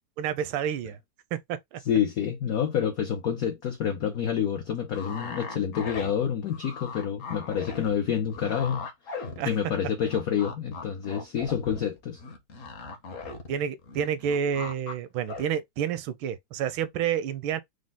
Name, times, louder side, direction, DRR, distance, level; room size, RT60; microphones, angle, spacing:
voice 1, 0.2-1.0 1.3-1.8 9.4-9.5 13.5-17.6, right 8 dB, 80° right, 1.4 m, -29 dB
voice 2, 1.9-8.8 9.5-12.2, left 8 dB, 85° left, 0.8 m, -28 dB
sound 1, 4.9-9.8 10.1-13.5 13.8-14.9 15.3-15.4, left 4 dB, 55° left, 1.0 m, -39 dB
4.8 x 2.0 x 3.8 m
omnidirectional pair, 2.2 m